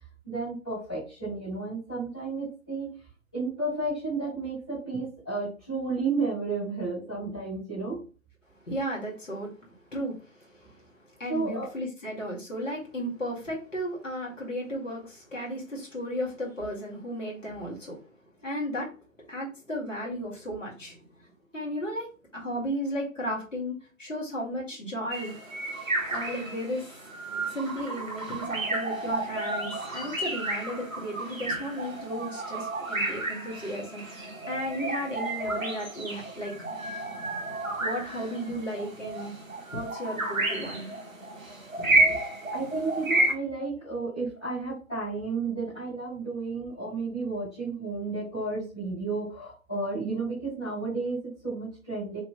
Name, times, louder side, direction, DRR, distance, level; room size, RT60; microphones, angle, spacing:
voice 1, 0.2-2.9 3.3-8.0 11.3-11.7 41.7-41.9 42.2-52.2, right 3 dB, 5° left, -19 dB, 1.5 m, -32 dB
voice 2, 8.6-18.1 18.4-18.9 19.3-21.3 21.5-25.4 26.0-26.9 27.5-36.6 37.8-39.3 39.7-40.9 41.8-42.1, equal, 65° left, -4 dB, 2.3 m, -35 dB
sound 1, 25.1-43.3, right 2 dB, 75° right, 1.5 m, -31 dB
5.8 x 3.2 x 2.2 m, 0.35 s
figure-of-eight pair, 170°, 41 cm